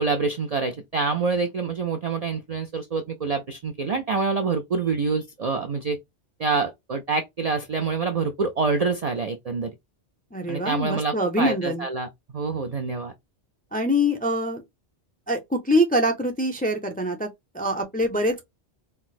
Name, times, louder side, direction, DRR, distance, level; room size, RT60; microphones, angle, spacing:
voice 1, 0.0-6.0 6.4-9.7 10.5-13.1, right 4 dB, 55° right, 0.4 m, -26 dB
voice 2, 10.3-11.9 13.7-14.6 15.3-17.3 17.5-18.4, equal, 15° left, 0.3 m, -24 dB
4.4 x 2.0 x 2.3 m
omnidirectional pair, 1.2 m